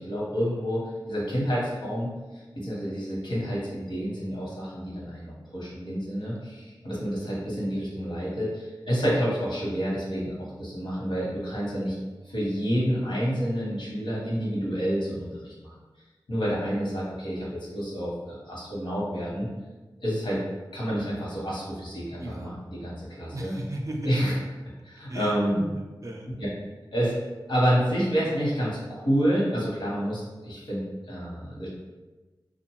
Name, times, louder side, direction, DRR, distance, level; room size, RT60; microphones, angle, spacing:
voice 1, 0.0-12.0 12.2-15.7 16.3-17.5 17.7-19.5 20.0-20.4 20.7-23.5 24.0-24.3 24.8-25.6 26.4-26.5 26.9-27.2 27.5-30.8 31.1-31.7, equal, 75° left, -6 dB, 1.0 m, -29 dB
voice 2, 22.2-22.6 23.3-24.3 25.1-26.3, right 1 dB, 40° right, 1 dB, 0.4 m, -35 dB
2.6 x 2.2 x 3.0 m, 1.2 s
wide cardioid pair, 55°, 8 cm